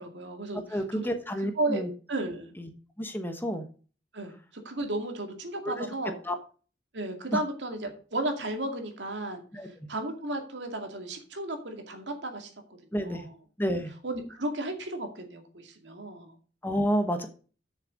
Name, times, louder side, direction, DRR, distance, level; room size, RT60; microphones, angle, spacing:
voice 1, 0.0-0.6 0.9-1.1 1.6-1.8 2.1-2.5 4.1-4.4 4.6-6.2 6.9-9.4 9.9-12.5 13.0-13.3 14.0-16.3, right 2 dB, 80° right, 4 dB, 2.2 m, -33 dB
voice 2, 0.7-1.9 2.6-2.7 3.0-3.7 5.6-5.9 6.2-6.3 7.3-7.4 9.5-9.7 12.9-13.3 13.6-13.9 16.6-17.3, equal, 10° left, 7 dB, 1.1 m, -29 dB
7.2 x 6.7 x 6.2 m, 0.39 s
head